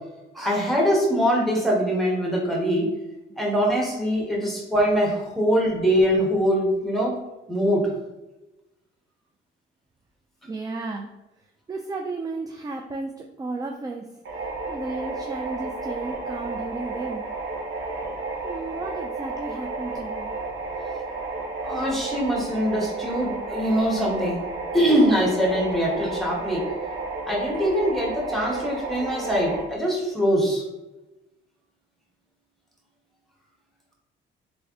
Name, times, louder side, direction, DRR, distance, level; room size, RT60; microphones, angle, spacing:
voice 1, 0.3-2.9 3.4-7.2 7.5-7.8 21.6-24.4 24.7-26.7 27.3-30.6, equal, ahead, -3 dB, 1.1 m, -23 dB
voice 2, 10.5-11.1 11.7-14.0 14.7-17.2 18.4-20.3, right 3 dB, 20° right, 2 dB, 0.3 m, -33 dB
sound 1, 14.3-29.6, right 3 dB, 65° right, 0.9 m, -32 dB
3.3 x 2.5 x 3.6 m, 1.0 s
cardioid pair, 90°, 20 cm